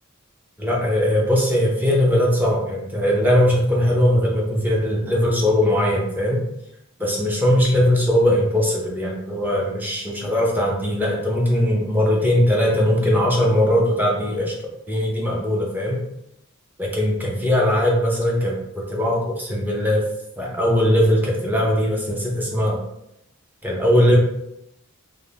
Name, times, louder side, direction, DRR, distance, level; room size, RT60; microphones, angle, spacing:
voice 1, 0.6-6.4 7.0-14.5 14.9-16.0 16.8-20.0 20.4-22.8 23.6-24.2, left 1 dB, 10° right, -3 dB, 0.5 m, -20 dB
2.5 x 2.1 x 3.2 m, 0.82 s
head